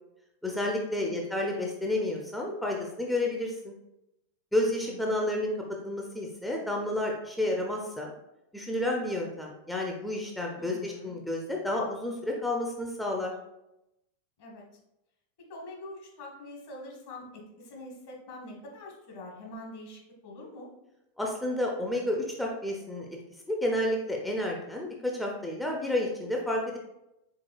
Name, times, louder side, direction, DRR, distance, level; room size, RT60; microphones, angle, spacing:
voice 1, 0.4-3.7 4.5-5.5 5.8-8.1 8.5-13.3 21.2-23.1 23.5-26.8, left 1 dB, 5° left, -1 dB, 0.5 m, -30 dB
voice 2, 0.9-1.4 4.9-5.4 10.6-11.1 14.4-14.6 15.4-20.7, left 1 dB, 50° left, -1 dB, 1.3 m, -45 dB
4.6 x 3.8 x 2.3 m, 0.88 s
figure-of-eight pair, 90°, 0 cm